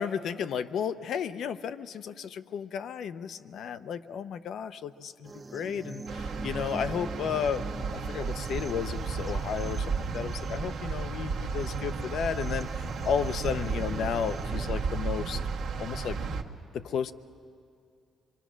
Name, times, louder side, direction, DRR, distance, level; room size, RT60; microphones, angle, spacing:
voice 1, 0.0-15.4 15.8-16.2 16.7-17.1, left 7 dB, 70° left, 11 dB, 0.7 m, -33 dB
sound 1, 5.2-14.7, right 3 dB, 25° right, 0.7 m, -44 dB
sound 2, 6.1-16.4, right 4 dB, 75° right, 1.2 m, -33 dB
26.0 x 23.5 x 6.2 m, 2.4 s
cardioid pair, 90°, 0 cm